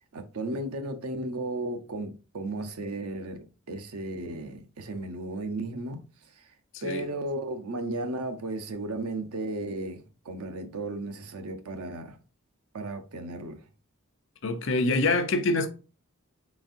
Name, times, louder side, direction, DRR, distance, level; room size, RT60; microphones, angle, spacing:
voice 1, 0.1-6.0 6.4-6.5 6.8-12.2 12.7-13.6, right 2 dB, 90° right, 0.6 m, -35 dB
voice 2, 14.4-15.7, left 2 dB, 55° left, 0.5 m, -25 dB
4.0 x 3.5 x 2.5 m
head